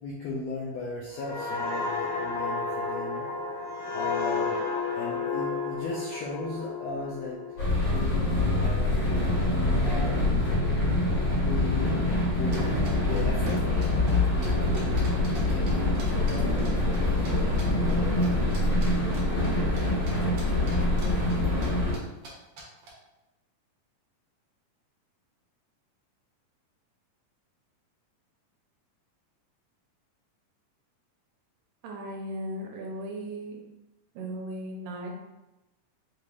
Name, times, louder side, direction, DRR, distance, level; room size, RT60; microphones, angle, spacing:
voice 1, 0.0-3.3 3.9-4.6 4.9-7.4 7.9-10.5 11.4-17.0 17.2-18.9, left 3 dB, 85° left, -4 dB, 1.5 m, -37 dB
sound 1, 1.2-8.6 9.0-9.3, left 4 dB, 70° left, 1.9 m, -32 dB
sound 2, 7.6-21.9, left 2 dB, 50° left, 2.0 m, -25 dB
sound 3, 12.5-15.4 15.7-17.3 17.6-17.9 18.2-19.8 20.1-21.7 21.9-22.0 22.2-22.3 22.6-22.9, right 2 dB, 60° right, 1.8 m, -45 dB
voice 2, 31.8-33.6 34.2-35.1, right 1 dB, 80° right, 0 dB, 2.1 m, -36 dB
5.3 x 3.2 x 2.5 m, 1.0 s
omnidirectional pair, 3.7 m